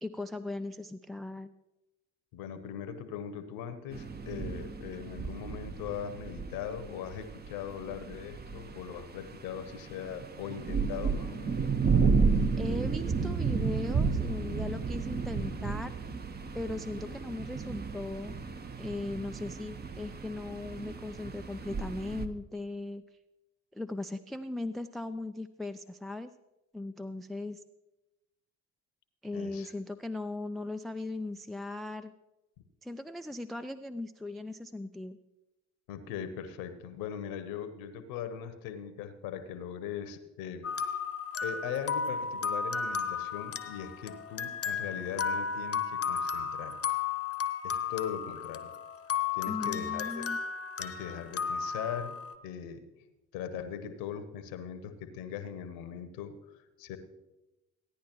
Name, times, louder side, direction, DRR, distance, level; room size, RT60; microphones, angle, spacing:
voice 1, 0.0-1.5 12.6-16.0 16.5-18.4 18.8-23.0 23.7-26.3 26.7-27.6 29.2-32.1 32.8-35.2 49.5-50.4, left 2 dB, ahead, 11 dB, 0.3 m, -38 dB
voice 2, 2.3-11.7 12.4-12.6 29.3-29.7 35.9-40.9 41.4-47.0 47.6-48.7 49.3-50.3 50.8-52.2 52.4-52.8 53.3-57.0, left 8 dB, 70° left, 11 dB, 1.0 m, -40 dB
sound 1, 3.9-22.3, right 5 dB, 25° right, 0.8 m, -32 dB
sound 2, 40.6-52.3, left 6 dB, 40° left, 0.9 m, -34 dB
16.0 x 10.0 x 3.0 m, 1.0 s
hypercardioid pair, 50°, 37 cm